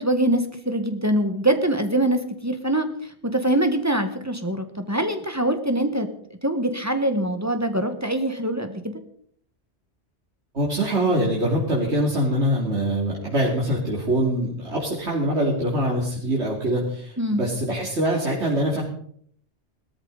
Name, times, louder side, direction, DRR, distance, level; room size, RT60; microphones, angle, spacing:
voice 1, 0.0-2.9 3.2-6.1 6.4-9.0 17.2-17.4, right 1 dB, 15° right, 7 dB, 1.5 m, -23 dB
voice 2, 10.5-18.8, right 1 dB, 80° right, -4 dB, 3.1 m, -23 dB
18.5 x 13.5 x 4.1 m, 0.63 s
omnidirectional pair, 1.1 m